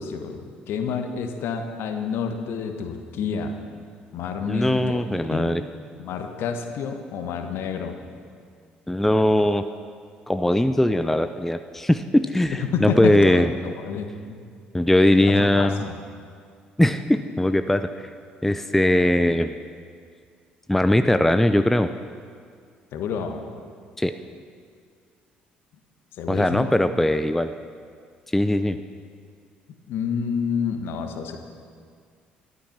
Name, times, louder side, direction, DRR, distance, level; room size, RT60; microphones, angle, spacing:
voice 1, 0.0-3.5 4.1-5.0 5.3-5.5 6.0-8.0 12.6-14.4 15.4-15.9 22.9-23.4 26.2-26.7 29.9-31.4, left 6 dB, 55° left, 6 dB, 1.4 m, -29 dB
voice 2, 4.5-5.6 8.9-9.6 10.3-13.5 14.7-15.8 16.8-17.9 18.4-19.5 20.7-21.9 24.0-24.1 26.3-27.5 28.3-28.8, left 1 dB, 5° left, 10 dB, 0.6 m, -20 dB
12.5 x 12.5 x 5.8 m, 2.1 s
figure-of-eight pair, 50°, 5 cm